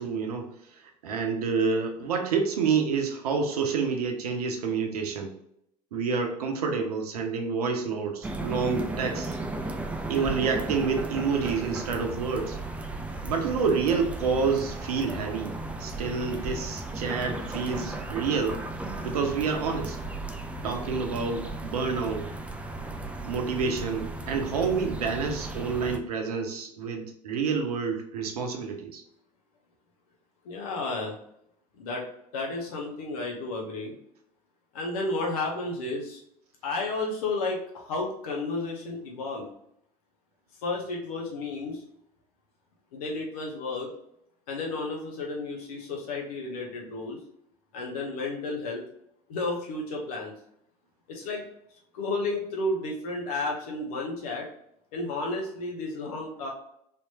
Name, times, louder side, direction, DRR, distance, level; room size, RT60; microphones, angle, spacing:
voice 1, 0.0-5.3 5.9-9.4 10.1-12.6 13.2-15.5 15.8-18.6 19.0-20.0 20.6-22.3 23.3-29.0, right 5 dB, 70° right, 4 dB, 0.7 m, -28 dB
sound 1, 8.2-26.0, right 2 dB, 5° right, 0.4 m, -35 dB
voice 2, 30.4-31.1 31.8-32.0 32.3-33.9 34.7-36.2 36.6-39.5 40.6-41.8 42.9-43.9 44.5-47.2 47.7-48.8 49.3-50.3 51.1-51.4 51.9-54.5 54.9-56.5, left 2 dB, 65° left, -1 dB, 0.8 m, -32 dB
3.4 x 3.0 x 2.8 m, 0.74 s
figure-of-eight pair, 65°, 20 cm